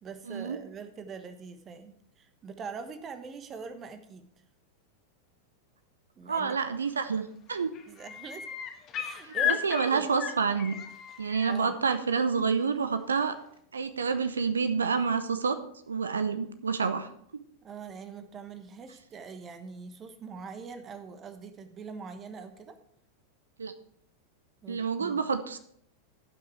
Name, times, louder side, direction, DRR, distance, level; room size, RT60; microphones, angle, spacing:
voice 1, 0.0-4.3 6.2-6.6 7.9-8.5 9.0-10.1 11.4-11.7 17.6-22.8 24.6-25.2, right 5 dB, 25° right, 10 dB, 1.2 m, -43 dB
voice 2, 6.3-7.7 9.2-10.8 11.2-13.4 13.7-15.6 15.9-17.1 23.6-23.7 24.7-25.6, right 5 dB, 70° right, 11 dB, 0.7 m, -28 dB
sound 1, 6.9-7.2 7.5-11.6 13.2-13.3, left 9 dB, 30° left, 1.5 m, -34 dB
16.0 x 6.0 x 4.5 m, 0.68 s
figure-of-eight pair, 90°, 0 cm